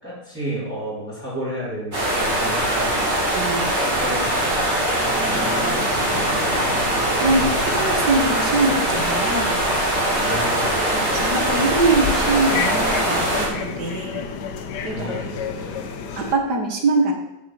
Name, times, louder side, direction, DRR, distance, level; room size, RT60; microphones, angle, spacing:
voice 1, 0.0-2.9 4.0-4.8 5.2-5.9 10.2-10.7 14.8-16.0, equal, 5° right, -9 dB, 4.2 m, -32 dB
sound 1, 1.9-13.5, right 1 dB, 40° right, 3.7 m, -22 dB
voice 2, 3.3-3.7 5.3-5.4 6.1-6.4 6.9-7.5 7.8-9.7 10.9-14.3 14.8-15.5 16.2-17.1, right 3 dB, 75° right, 2 dB, 2.4 m, -23 dB
Aircraft / Engine, 4.6-12.5, left 2 dB, 50° left, 1.9 m, -34 dB
sound 2, 7.0-16.4, left 6 dB, 90° left, 1.6 m, -32 dB
9.1 x 7.1 x 7.4 m, 0.99 s
omnidirectional pair, 1.8 m